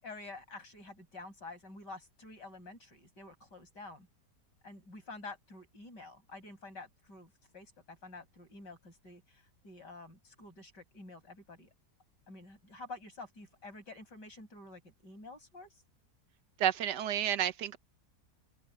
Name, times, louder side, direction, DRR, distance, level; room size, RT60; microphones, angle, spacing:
voice 1, 0.0-4.1 4.6-11.7 12.3-15.8, left 3 dB, 85° left, 8.5 m, -49 dB
voice 2, 16.6-17.8, right 10 dB, 80° right, 1.5 m, -30 dB
open air
omnidirectional pair, 1.8 m